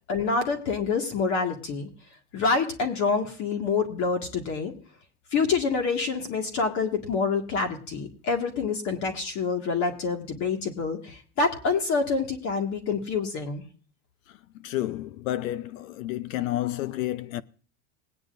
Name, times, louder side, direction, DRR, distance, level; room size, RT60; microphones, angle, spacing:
voice 1, 0.1-1.9 2.3-4.7 5.3-13.6, left 4 dB, 45° left, 2.1 m, -27 dB
voice 2, 14.3-17.4, left 15 dB, 85° left, 0.8 m, -31 dB
20.5 x 9.7 x 2.7 m
supercardioid pair, 130°, 39 cm